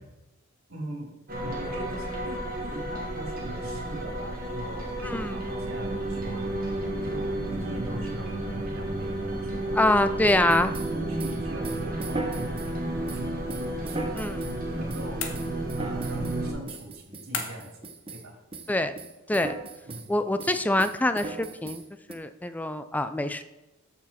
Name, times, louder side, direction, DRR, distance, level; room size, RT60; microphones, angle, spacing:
voice 1, 0.7-9.7 10.9-15.2 15.8-18.4 19.9-20.1, right 1 dB, 80° right, 0 dB, 3.1 m, -42 dB
sound 1, 1.3-16.5, right 1 dB, 45° right, 1.9 m, -32 dB
voice 2, 5.0-5.4 9.8-10.7 14.2-14.4 18.7-18.9 19.3-19.6 20.1-21.8 22.1-23.4, left 1 dB, 10° left, 10 dB, 0.4 m, -25 dB
sound 2, 10.3-12.7 13.1-14.6 14.9-15.1 15.3-16.4 16.7-18.3 18.5-18.7 19.0-20.1 20.4-22.1, right 3 dB, 25° right, 0.8 m, -38 dB
sound 3, 15.2-15.9 17.3-17.8, left 5 dB, 70° left, 1.4 m, -35 dB
13.0 x 6.1 x 4.3 m, 1.0 s
head